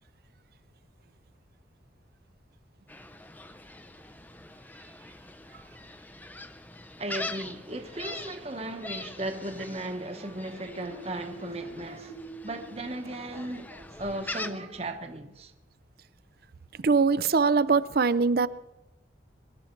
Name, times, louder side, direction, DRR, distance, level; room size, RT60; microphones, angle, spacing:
Gull seagull, 2.9-14.5, left 2 dB, 10° left, 0.6 m, -43 dB
voice 1, 7.0-12.2 12.4-15.5, right 1 dB, 30° right, 1.1 m, -36 dB
sound 1, 10.6-14.3, right 5 dB, 55° left, 1.5 m, -47 dB
voice 2, 16.8-18.5, right 4 dB, 50° right, 0.5 m, -22 dB
23.0 x 11.5 x 4.5 m
head